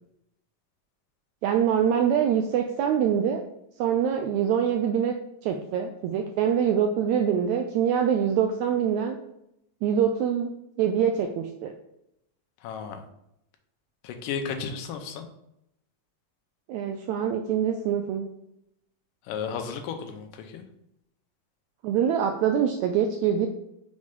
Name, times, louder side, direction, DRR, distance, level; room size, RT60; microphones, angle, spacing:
voice 1, 1.4-3.4 3.8-5.1 5.4-9.2 9.8-10.5 10.8-11.7 16.7-18.3 21.8-23.5, right 8 dB, 85° right, 4 dB, 1.6 m, -24 dB
voice 2, 12.6-13.0 14.0-15.3 19.3-20.6, left 6 dB, 90° left, 6 dB, 2.3 m, -34 dB
6.4 x 3.2 x 5.2 m, 0.80 s
omnidirectional pair, 3.8 m